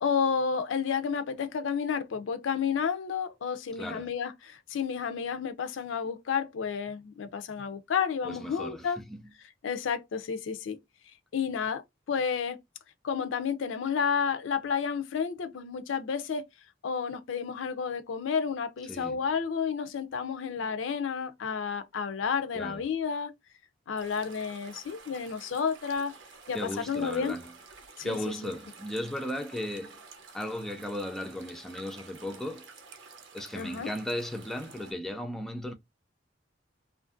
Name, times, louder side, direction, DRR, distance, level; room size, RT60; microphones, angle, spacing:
voice 1, 0.0-9.0 9.6-10.8 11.3-11.8 12.1-12.6 13.0-16.5 16.8-23.3 23.9-26.1 26.5-26.6 26.9-27.3 28.0-28.2 33.6-33.9, left 6 dB, 85° left, 0.4 m, -31 dB
voice 2, 3.7-4.1 8.2-9.2 18.9-19.3 22.5-22.9 26.5-27.6 28.0-30.0 30.3-32.7 33.3-35.7, left 1 dB, ahead, 0.3 m, -36 dB
sound 1, 24.0-34.9, right 4 dB, 70° right, 0.6 m, -51 dB
2.5 x 2.4 x 2.5 m
head